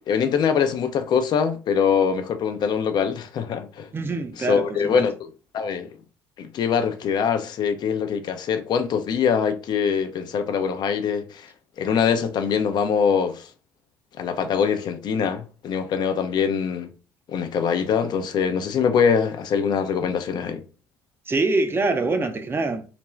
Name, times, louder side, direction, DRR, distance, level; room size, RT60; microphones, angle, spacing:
voice 1, 0.1-3.9 4.4-5.3 5.5-5.9 6.4-11.5 11.8-13.5 14.2-16.9 17.3-20.6, left 7 dB, 55° left, 0.5 m, -23 dB
voice 2, 3.9-5.0 21.3-22.9, right 3 dB, 25° right, 0.5 m, -24 dB
2.5 x 2.2 x 3.0 m
hypercardioid pair, 60°, 9 cm